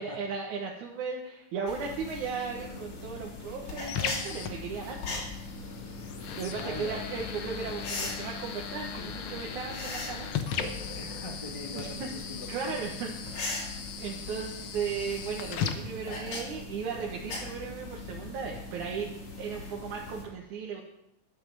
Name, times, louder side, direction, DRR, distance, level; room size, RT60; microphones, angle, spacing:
voice 1, 0.0-5.2 6.4-10.3 11.7-12.1 12.5-13.7 14.0-20.8, right 6 dB, 85° right, -1 dB, 2.8 m, -36 dB
sound 1, 1.7-20.2, left 3 dB, 85° left, 4.5 m, -40 dB
sound 2, 2.6-16.6, left 7 dB, 60° left, 1.5 m, -39 dB
voice 2, 6.6-7.1 10.9-12.9, left 1 dB, 40° left, 0 dB, 0.4 m, -41 dB
11.5 x 9.3 x 7.4 m, 0.86 s
omnidirectional pair, 3.4 m